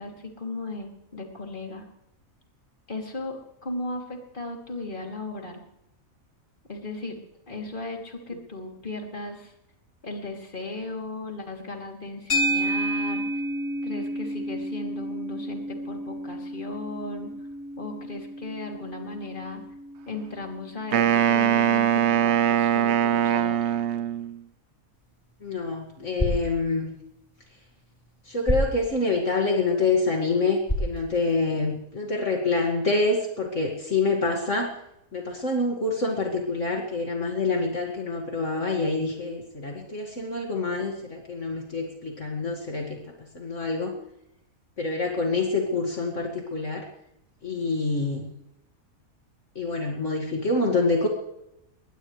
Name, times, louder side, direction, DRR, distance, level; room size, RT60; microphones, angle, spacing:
voice 1, 0.0-1.8 2.9-5.6 6.7-7.2 7.5-9.5 10.0-13.3 13.8-17.3 17.8-19.6 20.1-23.7, left 2 dB, 35° left, 1 dB, 3.2 m, -36 dB
sound 1, 12.3-20.7, right 1 dB, 85° left, 3.1 m, -31 dB
Wind instrument woodwind instrument, 20.9-24.4, right 9 dB, 60° right, 0.9 m, -22 dB
sound 2, 24.9-31.9, equal, 20° left, 4.2 m, -34 dB
voice 2, 25.4-26.9 28.3-34.7 35.1-43.0 43.3-44.0 44.8-46.8 47.4-48.3 49.6-51.1, left 3 dB, 60° left, 1 dB, 2.5 m, -26 dB
21.5 x 20.0 x 3.3 m, 0.82 s
omnidirectional pair, 1.5 m